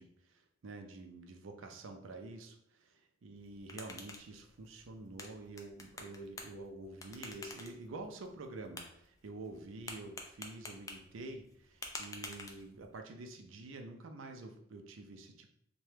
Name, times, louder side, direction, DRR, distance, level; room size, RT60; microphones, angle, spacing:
voice 1, 0.0-15.5, right 2 dB, 80° right, 5 dB, 0.4 m, -48 dB
sound 1, 3.3-13.0, left 3 dB, 15° left, 0.3 m, -50 dB
2.9 x 2.2 x 3.2 m, 0.69 s
head